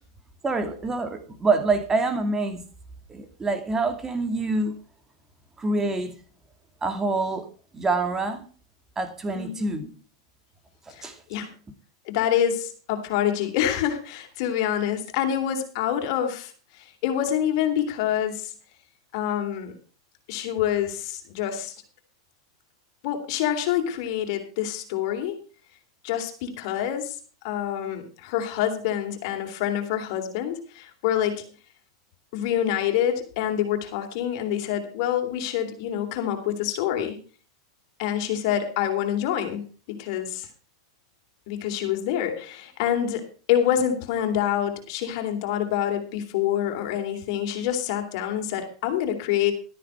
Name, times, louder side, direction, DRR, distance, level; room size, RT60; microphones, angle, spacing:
voice 1, 0.4-2.6 3.1-4.8 5.6-6.1 6.8-7.4 7.7-8.5 9.0-9.9 11.0-11.1, right 3 dB, 15° right, 7 dB, 2.4 m, -26 dB
voice 2, 9.3-9.7 10.9-11.5 12.1-18.5 19.1-19.7 20.3-21.7 23.0-25.4 26.0-27.2 27.4-31.4 32.3-37.2 38.0-40.5 41.5-49.5, left 10 dB, 60° left, 5 dB, 3.4 m, -26 dB
13.0 x 10.0 x 4.7 m, 0.38 s
supercardioid pair, 130°, 3 cm